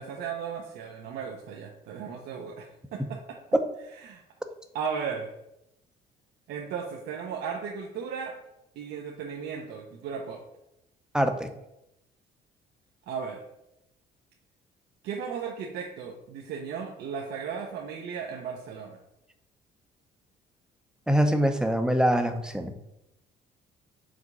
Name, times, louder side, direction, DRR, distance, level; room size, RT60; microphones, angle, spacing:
voice 1, 0.0-3.4 4.0-4.2 4.7-5.3 6.5-8.4 8.8-10.4 13.1-13.4 15.0-19.0, right 6 dB, 75° right, 0 dB, 0.7 m, -36 dB
voice 2, 11.1-11.5 21.1-22.7, equal, 5° right, 6 dB, 0.6 m, -24 dB
5.0 x 3.6 x 5.3 m, 0.85 s
cardioid pair, 110°, 17 cm